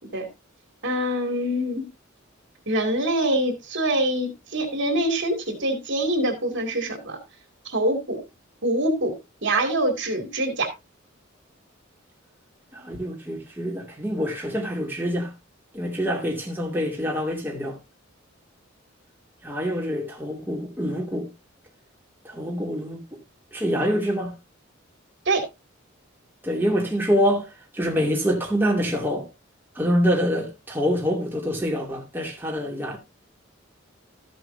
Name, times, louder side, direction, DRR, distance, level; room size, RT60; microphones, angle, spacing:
voice 1, 0.8-1.8 2.7-7.2 7.6-8.2 8.6-9.1 9.4-10.7 25.3-25.4, right 1 dB, 60° right, 2.4 m, -24 dB
voice 2, 12.7-15.3 15.7-17.8 19.4-21.3 22.2-23.0 23.5-24.3 26.4-29.3 29.8-33.0, equal, 10° right, 2.3 m, -25 dB
13.5 x 7.7 x 2.7 m
head